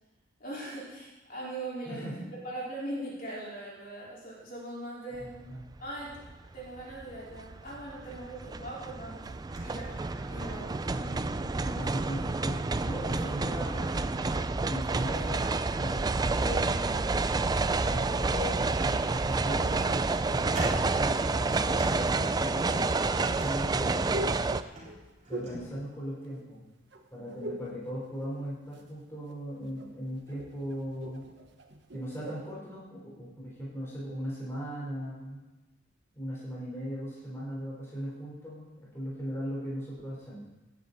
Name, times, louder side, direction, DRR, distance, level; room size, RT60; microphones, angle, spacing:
voice 1, 0.4-2.0 2.3-5.3 5.8-6.2 6.5-9.3 9.6-10.0 10.3-10.8 13.2-13.3, right 1 dB, 45° left, -6 dB, 4.6 m, -40 dB
voice 2, 1.8-2.2 5.2-5.7 10.9-14.1 14.6-17.1 17.8-24.3 25.3-26.6 27.1-31.2 31.9-35.4 36.1-40.5, equal, 15° left, -6 dB, 4.4 m, -38 dB
sound 1, 5.6-5.8 6.2-24.6, right 3 dB, 20° right, 0.3 m, -29 dB
sound 2, 9.4-25.7, right 1 dB, 35° right, 3.7 m, -45 dB
sound 3, 17.8-20.0 20.7-21.5 22.6-26.6 26.9-27.8 28.1-29.0 29.3-32.5, equal, 60° right, 1.3 m, -43 dB
17.5 x 10.5 x 4.2 m, 1.1 s
head